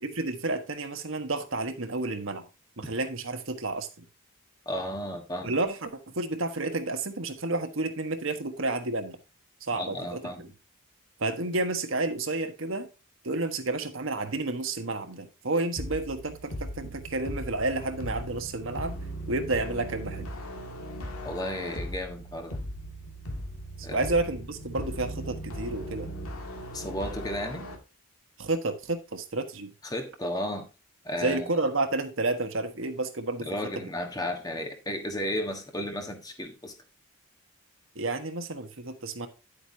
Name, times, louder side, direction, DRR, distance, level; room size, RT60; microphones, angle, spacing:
voice 1, 0.0-2.5 2.8-4.0 5.4-9.2 9.6-10.5 11.2-12.9 13.2-18.9 19.3-20.3 23.8-26.1 28.4-29.7 31.2-33.5 33.8-33.9 37.9-39.3, right 2 dB, 65° right, 1.4 m, -30 dB
voice 2, 4.6-5.6 9.7-10.4 21.2-22.6 23.8-24.1 26.7-27.7 29.8-30.7 31.0-31.5 33.4-36.7, left 1 dB, 15° left, 1.4 m, -33 dB
sound 1, 15.8-27.8, equal, 85° left, 2.2 m, -38 dB
10.0 x 8.1 x 2.8 m
head